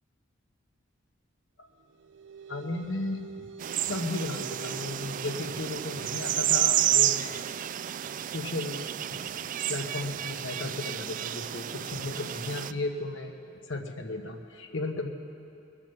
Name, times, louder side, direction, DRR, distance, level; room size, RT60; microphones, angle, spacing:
sound 1, 1.7-12.7, right 6 dB, 65° right, 0.8 m, -49 dB
voice 1, 2.5-3.5 3.8-7.5 8.2-8.8 9.1-9.2 9.7-15.1, left 2 dB, 75° left, 4 dB, 1.2 m, -35 dB
sound 2, 3.6-12.7, right 12 dB, 45° right, 0.3 m, -30 dB
21.5 x 7.4 x 6.7 m, 2.7 s
head